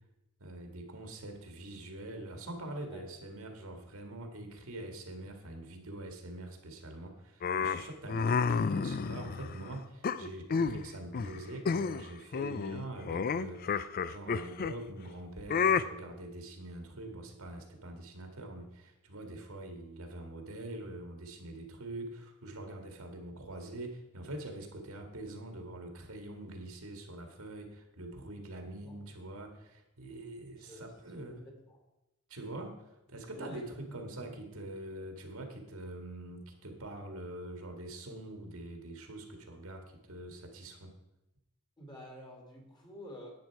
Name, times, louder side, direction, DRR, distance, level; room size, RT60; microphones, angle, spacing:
voice 1, 0.4-31.4 32.3-40.9, right 1 dB, 75° right, 4 dB, 1.9 m, -44 dB
sound 1, 7.4-9.6 10.0-10.8 11.1-11.4 11.6-12.1 12.3-14.8 15.5-15.8, left 5 dB, 40° left, 0.4 m, -30 dB
voice 2, 30.5-31.8 33.4-34.4 41.8-43.3, equal, 20° left, 2 dB, 2.1 m, -50 dB
10.5 x 8.9 x 4.7 m, 0.93 s
head